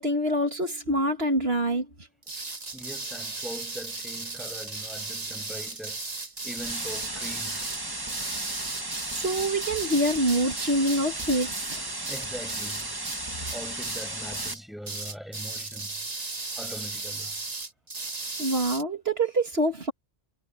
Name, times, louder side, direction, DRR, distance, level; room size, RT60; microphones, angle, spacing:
voice 1, 0.0-1.9 9.2-11.8 18.4-19.9, right 1 dB, 70° right, 2.6 m, -25 dB
sound 1, 2.2-13.2 13.5-14.1 14.3-14.6 14.9-18.8, right 3 dB, 40° right, 1.6 m, -36 dB
voice 2, 2.7-6.0 6.4-7.7 12.1-12.9 13.5-15.9 16.6-17.4, equal, ahead, 6.6 m, -41 dB
sound 2, 6.5-14.5, right 2 dB, 20° right, 1.7 m, -35 dB
omnidirectional pair, 1.1 m